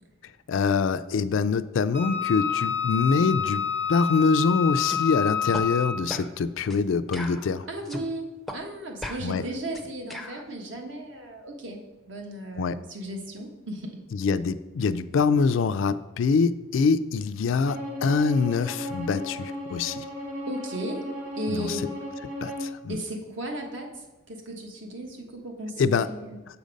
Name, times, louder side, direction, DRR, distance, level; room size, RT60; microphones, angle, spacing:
voice 1, 0.5-7.7 9.2-9.4 12.6-12.8 14.1-20.1 21.5-21.8 22.4-23.0 25.8-26.1, left 5 dB, 70° left, 13 dB, 0.3 m, -24 dB
Wind instrument woodwind instrument, 1.9-6.1, left 8 dB, 25° right, 0.8 m, -28 dB
sound 1, 4.8-5.0 5.5-5.7 6.1-6.3 6.7-6.8 7.1-8.1 8.5-8.6 9.0-10.4, left 1 dB, ahead, 0.5 m, -37 dB
voice 2, 7.7-11.8 12.1-14.0 20.5-21.0 21.4-21.9 22.9-23.9 24.3-26.4, right 1 dB, 65° right, 3 dB, 1.2 m, -35 dB
Bowed string instrument, 17.6-22.7, left 1 dB, 50° right, 2.2 m, -35 dB
7.0 x 5.1 x 5.2 m, 1.1 s
head